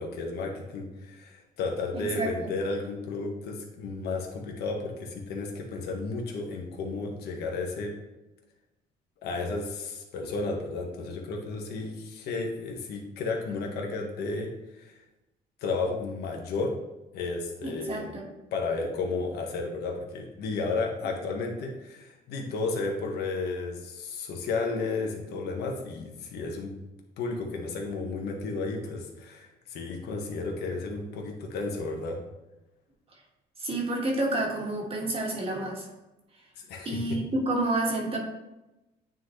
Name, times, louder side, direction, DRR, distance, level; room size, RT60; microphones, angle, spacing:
voice 1, 0.0-7.9 9.2-14.5 14.8-14.9 15.6-16.7 17.1-18.0 18.5-26.8 27.2-32.2 36.6-37.2, left 3 dB, 75° left, 1 dB, 1.4 m, -33 dB
voice 2, 1.9-2.5 17.6-18.3 33.6-35.9 36.8-38.2, right 2 dB, 35° right, -1 dB, 1.7 m, -29 dB
9.3 x 4.0 x 3.2 m, 0.99 s
cardioid pair, 110°, 17 cm